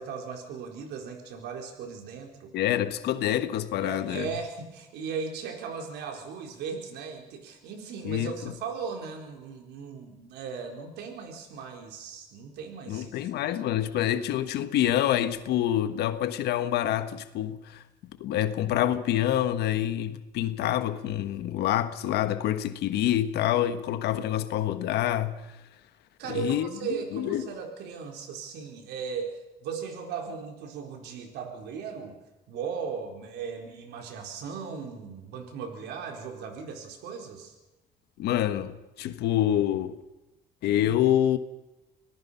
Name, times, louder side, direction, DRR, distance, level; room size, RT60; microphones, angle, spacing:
voice 1, 0.0-2.5 3.8-13.6 14.1-14.2 26.2-32.1 32.5-37.5, right 6 dB, 80° right, 4.2 m, -37 dB
voice 2, 2.5-4.3 8.0-8.5 12.9-17.8 18.2-25.4 26.3-26.7 27.1-27.5 38.2-40.0 40.6-41.4, left 12 dB, 75° left, 1.3 m, -27 dB
25.5 x 18.5 x 5.7 m
cardioid pair, 110°, 17 cm